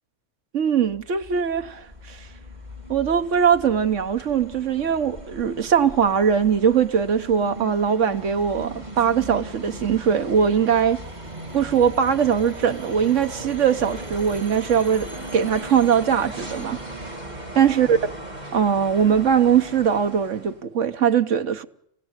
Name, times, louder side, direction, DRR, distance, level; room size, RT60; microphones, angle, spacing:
voice 1, 0.5-2.2 2.9-11.0 11.5-16.8 17.5-18.0 18.5-21.7, right 7 dB, 80° right, 1.5 m, -21 dB
sound 1, 0.8-20.6, right 1 dB, 35° right, 3.4 m, -38 dB
28.0 x 17.0 x 8.2 m
omnidirectional pair, 1.2 m